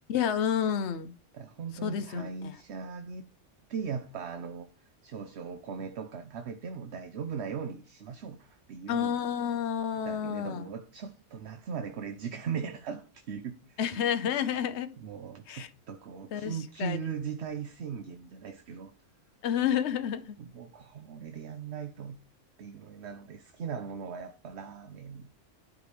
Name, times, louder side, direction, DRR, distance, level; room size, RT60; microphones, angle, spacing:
voice 1, 0.1-1.1 1.8-2.5 8.9-10.7 13.8-15.0 15.5-15.7 16.3-17.0 19.4-20.4, left 8 dB, 70° left, 1.0 m, -30 dB
voice 2, 1.3-3.3 3.7-4.7 5.0-9.2 10.0-13.8 15.0-18.9 20.4-22.2 22.6-25.3, right 6 dB, 65° right, 1.0 m, -39 dB
11.5 x 4.8 x 3.4 m
omnidirectional pair, 1.3 m